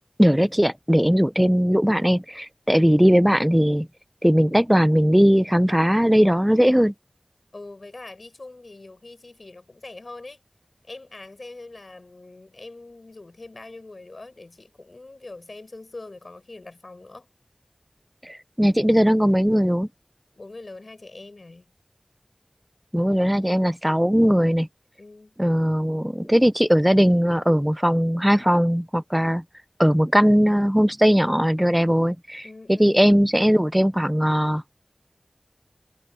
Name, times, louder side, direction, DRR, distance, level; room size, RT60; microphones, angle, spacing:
voice 1, 0.2-3.9 4.2-6.9 18.3-19.9 22.9-24.7 25.4-29.4 29.8-32.4 32.7-34.6, equal, 5° right, 0.7 m, -19 dB
voice 2, 7.5-10.4 10.8-17.3 20.4-21.6 25.0-25.4 32.4-33.0, left 2 dB, 85° left, 6.5 m, -43 dB
wide cardioid pair, 50°, 0 cm